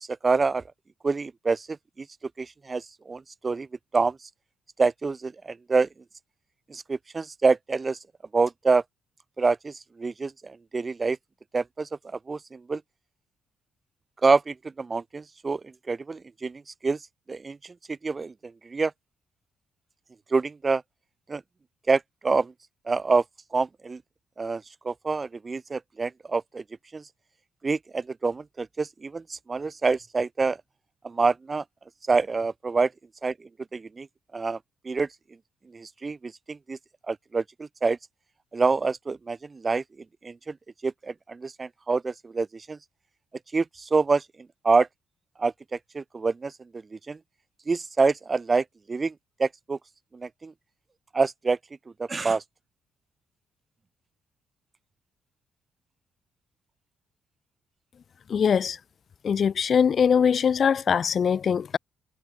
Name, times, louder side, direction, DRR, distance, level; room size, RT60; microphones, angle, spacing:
voice 1, 0.2-0.6 1.0-1.7 2.4-2.8 3.1-3.7 3.9-4.2 4.8-5.3 5.7-5.9 6.7-8.0 8.3-8.8 9.4-9.7 10.0-11.2 11.5-11.9 12.3-12.8 14.2-15.6 15.9-17.0 17.3-17.6 18.0-18.3 18.7-18.9 20.3-20.8 21.3-21.4 21.9-22.5 22.9-23.2 23.5-24.0 24.4-26.6 26.9-27.0 27.6-30.6 31.0-31.6 32.1-32.9 33.2-33.3 33.7-34.1 34.3-34.6 34.9-35.1 35.7-36.8 37.1-38.0 38.5-39.8 40.2-40.5 40.8-42.8 43.5-44.2 44.6-44.9 45.4-45.5 45.9-46.5 47.1-47.2 47.7-49.1 49.4-49.8 50.1-50.5 51.1-51.6 52.0-52.4, right 4 dB, 30° right, 5.1 m, -26 dB
voice 2, 58.3-58.8 59.2-61.8, left 7 dB, 50° left, 4.1 m, -22 dB
cardioid pair, 90°, 0 cm